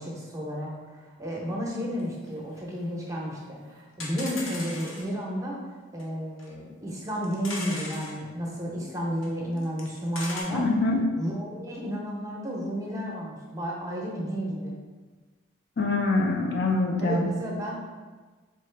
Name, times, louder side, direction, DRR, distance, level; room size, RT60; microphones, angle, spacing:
voice 1, 0.0-5.6 5.9-10.7 11.1-14.8 17.0-17.7, equal, 15° right, -3 dB, 0.6 m, -32 dB
sound 1, 2.0-2.1 2.3-2.4 2.6-2.7 3.2-3.3 3.4-3.5 4.0-5.1 6.0-6.1 6.4-6.5 7.0-8.1 9.2-9.3 9.6-10.4, left 2 dB, 85° left, 0.8 m, -37 dB
voice 2, 10.5-11.0 15.8-17.3, left 2 dB, 55° left, 1 dB, 0.5 m, -24 dB
3.8 x 3.7 x 3.3 m, 1.3 s
head